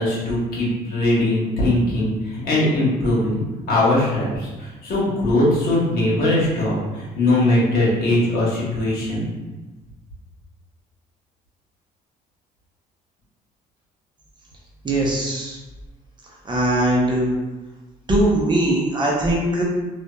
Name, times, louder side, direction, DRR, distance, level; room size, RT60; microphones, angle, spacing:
voice 1, 0.0-3.4 3.7-9.3, left 1 dB, 60° left, -6 dB, 1.0 m, -20 dB
voice 2, 14.8-15.6 16.4-17.3 18.1-19.6, right 1 dB, 25° right, -4 dB, 0.6 m, -20 dB
2.7 x 2.2 x 2.2 m, 1.2 s
cardioid pair, 110°, 17 cm